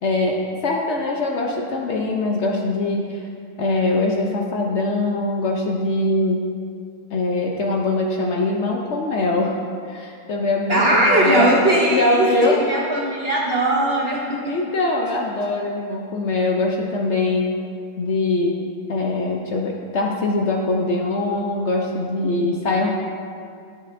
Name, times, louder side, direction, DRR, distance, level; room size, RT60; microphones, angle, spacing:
voice 1, 0.0-3.2 3.6-6.4 7.1-9.6 9.9-11.5 11.9-12.6 14.5-17.5 18.0-18.5 18.9-22.9, left 2 dB, 70° left, 0 dB, 0.6 m, -22 dB
voice 2, 10.7-14.6, right 1 dB, 60° right, -3 dB, 0.6 m, -19 dB
10.0 x 6.8 x 2.5 m, 2.3 s
omnidirectional pair, 1.8 m